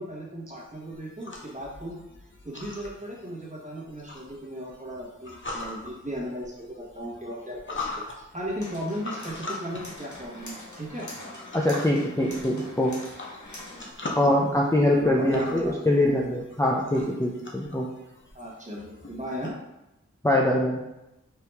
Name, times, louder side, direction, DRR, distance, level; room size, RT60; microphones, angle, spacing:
voice 1, 0.0-2.0 2.4-11.1 14.2-14.3 14.9-16.3 18.3-19.5, equal, 25° right, -4 dB, 1.4 m, -36 dB
sound 1, 0.6-19.5, left 2 dB, 40° left, 0.8 m, -42 dB
sound 2, 8.6-13.9, left 1 dB, 80° left, 1.1 m, -44 dB
voice 2, 11.5-12.9 14.2-17.9 20.2-20.8, left 1 dB, 10° left, -3 dB, 0.5 m, -23 dB
4.6 x 2.9 x 3.4 m, 0.92 s
wide cardioid pair, 40°, 29 cm